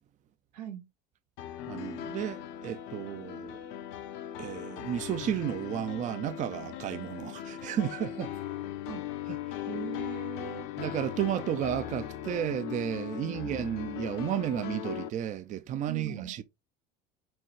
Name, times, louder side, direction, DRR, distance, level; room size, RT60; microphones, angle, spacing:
voice 1, 0.5-0.8 8.9-9.1 9.7-10.7 13.2-13.4 15.9-16.4, right 11 dB, 90° right, 0.9 m, -40 dB
sound 1, 1.4-15.1, left 11 dB, 70° left, 0.7 m, -39 dB
voice 2, 1.7-3.6 4.4-8.3 9.3-9.6 10.8-16.4, right 10 dB, 40° right, 0.5 m, -33 dB
4.5 x 3.1 x 3.0 m
supercardioid pair, 90°, 20 cm